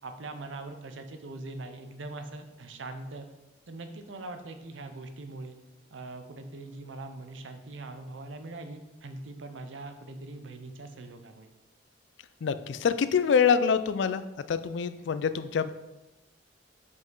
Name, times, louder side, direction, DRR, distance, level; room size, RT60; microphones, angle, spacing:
voice 1, 0.0-3.3 3.7-5.6 5.9-11.5, right 2 dB, 85° right, 8 dB, 0.7 m, -42 dB
voice 2, 12.4-15.7, left 6 dB, 70° left, 13 dB, 0.4 m, -26 dB
5.6 x 5.2 x 3.8 m, 1.0 s
head